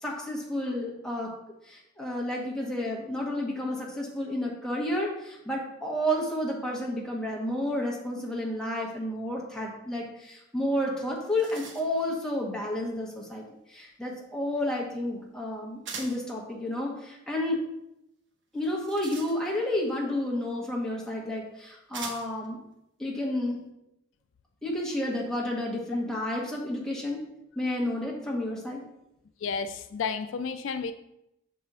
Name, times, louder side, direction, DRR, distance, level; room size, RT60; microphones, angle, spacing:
voice 1, 0.0-1.3 1.6-17.6 18.5-22.6 23.0-23.6 24.6-27.2 27.6-28.8, left 1 dB, 5° left, -3 dB, 1.1 m, -31 dB
sound 1, 10.7-10.8 11.1-12.1 15.8-16.3 18.5-19.7 20.8-20.9 21.9-22.5, right 4 dB, 65° right, 0.8 m, -42 dB
voice 2, 29.4-30.9, left 5 dB, 80° left, 10 dB, 0.4 m, -31 dB
6.0 x 3.7 x 4.2 m, 0.83 s
head